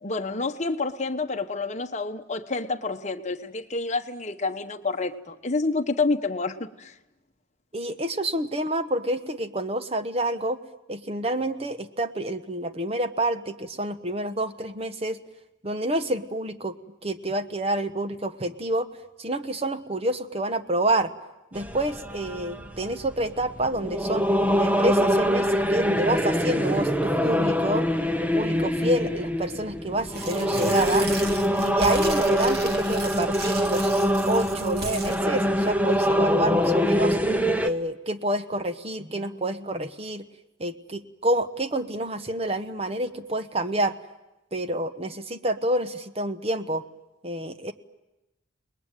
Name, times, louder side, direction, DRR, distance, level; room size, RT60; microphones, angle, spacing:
voice 1, 0.0-6.9, left 3 dB, 35° left, 6 dB, 1.2 m, -28 dB
voice 2, 7.7-10.6 10.9-15.2 15.6-16.8 17.0-18.9 19.2-21.1 21.5-24.3 24.5-27.9 28.2-31.1 31.6-33.9 34.3-37.2 37.6-40.2 40.6-44.0 44.5-46.8 47.2-47.7, right 1 dB, 30° right, 10 dB, 1.1 m, -28 dB
sound 1, 21.5-37.7, equal, 10° right, 0.9 m, -24 dB
Tearing, 30.0-35.2, right 3 dB, 50° right, 2.7 m, -35 dB
29.5 x 20.5 x 9.2 m, 0.99 s
head